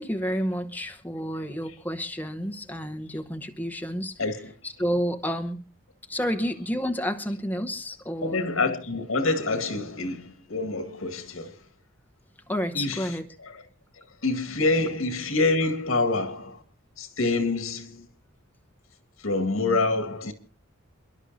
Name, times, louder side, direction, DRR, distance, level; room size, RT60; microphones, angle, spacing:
voice 1, 0.0-4.2 4.6-5.6 6.1-8.5 12.5-13.2, equal, 10° left, 0.9 m, -30 dB
voice 2, 4.2-4.5 8.2-11.7 12.7-13.6 14.0-16.6 17.0-18.1 19.2-20.3, left 3 dB, 90° left, 2.0 m, -27 dB
28.0 x 11.5 x 2.7 m
head